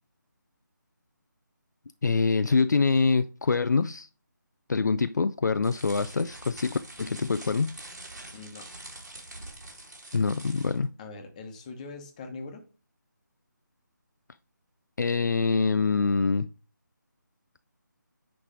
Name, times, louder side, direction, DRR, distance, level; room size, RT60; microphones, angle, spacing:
voice 1, 2.0-4.1 4.7-7.7 10.1-10.9 15.0-16.5, left 4 dB, 60° left, 0.4 m, -25 dB
sound 1, 5.6-10.8, right 2 dB, 55° right, 3.2 m, -45 dB
voice 2, 8.3-8.7 11.0-12.6, left 3 dB, 20° left, 1.1 m, -42 dB
9.7 x 3.3 x 4.9 m
figure-of-eight pair, 155°, 11 cm